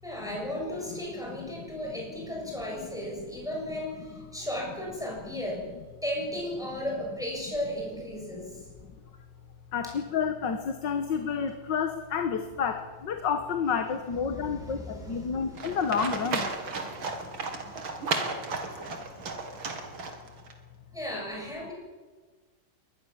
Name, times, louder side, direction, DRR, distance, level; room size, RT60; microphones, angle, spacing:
voice 1, 0.0-5.7 6.0-8.6 14.3-15.5 19.2-19.3 20.9-21.7, equal, ahead, -2 dB, 6.9 m, -35 dB
voice 2, 9.7-12.8 13.1-14.8 15.1-16.4, left 6 dB, 65° left, 7 dB, 2.0 m, -29 dB
Livestock farm animals working animals, 15.6-20.5, right 3 dB, 85° right, 3.3 m, -34 dB
23.0 x 19.5 x 7.3 m, 1.4 s
omnidirectional pair, 2.2 m